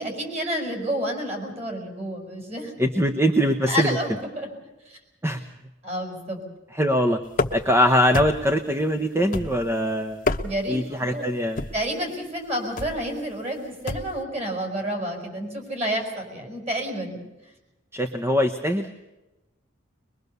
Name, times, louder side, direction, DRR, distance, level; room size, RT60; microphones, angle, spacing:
voice 1, 0.0-2.8 3.7-4.5 4.9-5.0 5.8-6.4 10.4-11.2 11.7-17.2, equal, 35° right, 2 dB, 5.7 m, -29 dB
voice 2, 2.8-4.0 5.2-5.4 6.7-7.2 7.5-10.3 10.7-11.6 17.9-18.9, equal, 15° right, 7 dB, 0.9 m, -22 dB
sound 1, 7.3-7.8 8.1-8.6 9.3-9.8 10.1-10.8 11.6-11.9 12.8-13.0 13.9-14.2, left 2 dB, 40° left, 1.0 m, -28 dB
22.5 x 22.5 x 6.8 m, 1.0 s
head